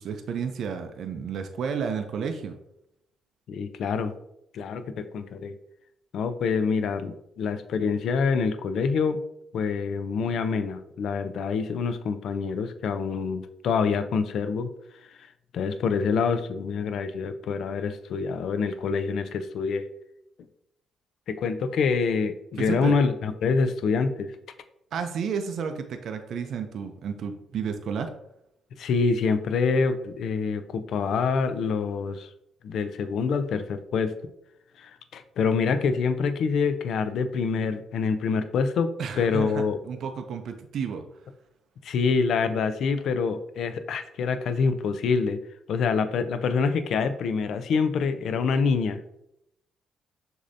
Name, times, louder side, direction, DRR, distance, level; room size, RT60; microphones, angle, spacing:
voice 1, 0.0-2.6 22.6-22.9 24.9-28.1 39.0-41.0, right 6 dB, 65° right, 6 dB, 0.4 m, -31 dB
voice 2, 3.5-4.1 4.5-5.5 6.1-9.2 9.5-14.7 15.5-19.9 21.3-24.3 28.8-32.3 32.6-34.1 34.8-38.9 39.2-39.8 41.8-45.4 45.7-49.0, left 5 dB, 70° left, 10 dB, 0.4 m, -26 dB
6.4 x 2.7 x 2.6 m, 0.81 s
cardioid pair, 90°, 0 cm